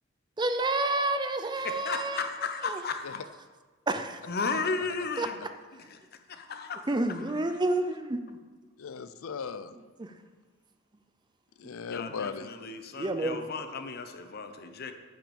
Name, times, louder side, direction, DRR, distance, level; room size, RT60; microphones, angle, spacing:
voice 1, 0.4-2.3 2.6-2.8 3.9-4.2 5.2-5.3 6.9-8.4 10.0-10.1 12.9-13.4, right 2 dB, 20° right, 9 dB, 0.5 m, -29 dB
voice 2, 1.6-3.2 4.3-5.4 5.9-6.0 6.3-7.2 11.9-14.9, left 4 dB, 50° left, 7 dB, 0.8 m, -34 dB
voice 3, 8.8-9.7 11.6-12.5, left 5 dB, 85° left, 12 dB, 0.5 m, -37 dB
8.6 x 5.9 x 7.1 m, 1.4 s
head